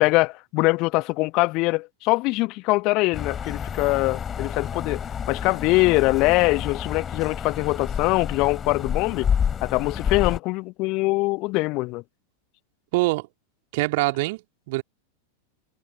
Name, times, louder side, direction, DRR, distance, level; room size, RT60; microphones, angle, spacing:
voice 1, 0.0-5.0 5.3-9.3 9.6-12.0, left 23 dB, 40° left, 1.2 m, -23 dB
sound 1, 3.1-10.4, left 7 dB, 20° left, 4.1 m, -29 dB
voice 2, 12.9-13.3 13.7-14.4 14.7-14.8, right 23 dB, 50° right, 3.0 m, -23 dB
figure-of-eight pair, 90°, 0 cm